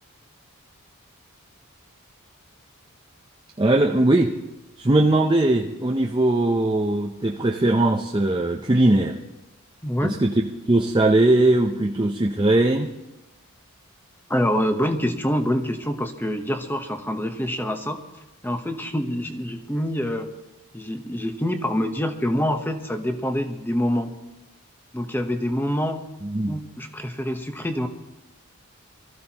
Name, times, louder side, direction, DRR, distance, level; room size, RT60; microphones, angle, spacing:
voice 1, 3.6-4.3 4.8-9.2 10.0-12.9 26.2-26.6, right 2 dB, 20° right, 1 dB, 0.6 m, -20 dB
voice 2, 9.8-10.2 14.3-18.0 18.4-20.3 20.7-24.1 24.9-26.0 26.5-27.9, equal, 10° left, 6 dB, 1.0 m, -26 dB
24.0 x 14.0 x 2.9 m, 0.97 s
head